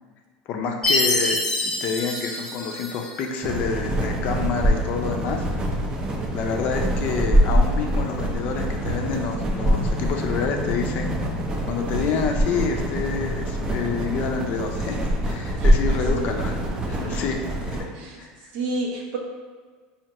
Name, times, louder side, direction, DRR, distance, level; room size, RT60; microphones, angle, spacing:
voice 1, 0.5-1.4 1.6-5.5 6.3-11.1 11.6-16.6 16.9-17.8 18.2-18.5, left 5 dB, 50° left, 3 dB, 0.5 m, -28 dB
Chime, 0.8-3.3, left 2 dB, 15° left, 0.9 m, -25 dB
sound 1, 3.4-17.8, equal, 25° right, 0.5 m, -24 dB
sound 2, 3.8-12.5, left 1 dB, 40° right, 1.1 m, -37 dB
voice 2, 15.6-16.3 16.9-17.5 17.9-18.2 18.5-19.2, right 2 dB, 70° right, -1 dB, 0.8 m, -32 dB
4.4 x 2.8 x 2.9 m, 1.5 s
supercardioid pair, 135°, 3 cm